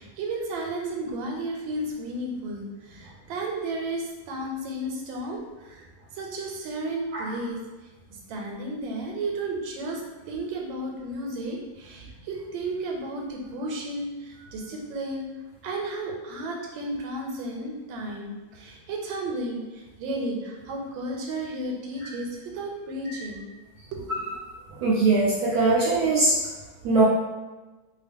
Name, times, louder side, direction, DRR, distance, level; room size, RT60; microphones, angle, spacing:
voice 1, 0.0-5.9 6.1-7.6 8.1-10.0 10.3-15.3 15.6-23.5 23.9-24.2, right 1 dB, 90° right, 0 dB, 1.4 m, -33 dB
voice 2, 24.8-26.4 26.8-27.0, right 3 dB, 70° right, -5 dB, 0.9 m, -21 dB
3.0 x 2.2 x 3.4 m, 1.2 s
omnidirectional pair, 2.1 m